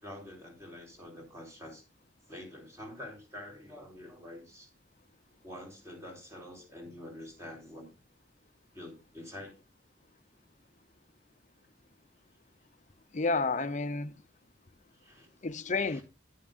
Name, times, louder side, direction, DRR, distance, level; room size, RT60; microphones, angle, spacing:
voice 1, 0.0-1.8 2.3-4.7 5.4-7.9 8.7-9.5 14.9-15.4 15.7-16.0, left 1 dB, 15° right, 3.8 m, -47 dB
voice 2, 13.1-14.1 15.4-16.0, left 3 dB, 40° left, 0.8 m, -30 dB
11.0 x 11.0 x 2.5 m
head